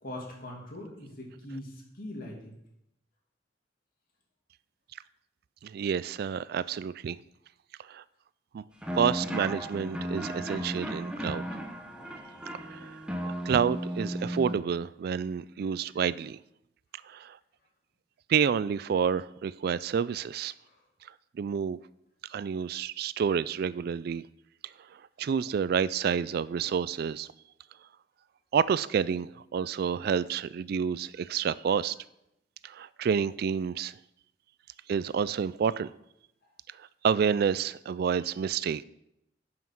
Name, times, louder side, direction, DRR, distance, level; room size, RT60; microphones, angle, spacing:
voice 1, 0.0-2.6, left 1 dB, 55° left, -1 dB, 2.5 m, -41 dB
voice 2, 5.6-7.2 7.9-8.0 8.5-8.6 8.9-11.5 12.7-12.9 13.5-16.4 17.1-17.4 18.3-20.5 21.4-21.8 22.3-24.2 25.2-27.3 28.5-31.9 32.6-33.9 34.9-35.9 37.0-38.8, right 7 dB, 60° right, 18 dB, 0.3 m, -29 dB
sound 1, 8.8-14.5, equal, 5° right, 1.1 m, -35 dB
9.3 x 5.8 x 6.0 m, 0.80 s
head